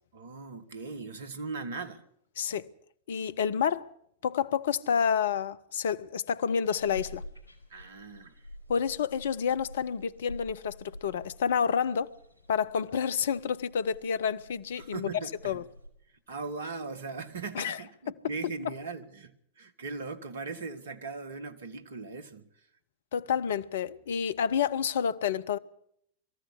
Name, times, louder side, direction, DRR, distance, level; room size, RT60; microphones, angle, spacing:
voice 1, 0.1-2.0 7.7-8.3 14.8-15.6 16.3-22.5, right 4 dB, 65° right, 1.7 m, -39 dB
voice 2, 2.4-2.7 3.1-3.9 4.2-7.2 8.7-12.1 12.5-15.6 17.5-17.8 18.1-18.2 23.1-25.6, left 7 dB, 60° left, 0.7 m, -29 dB
sound 1, 6.6-15.9, left 1 dB, 85° right, 4.7 m, -49 dB
22.5 x 14.5 x 8.2 m
figure-of-eight pair, 90°, 0 cm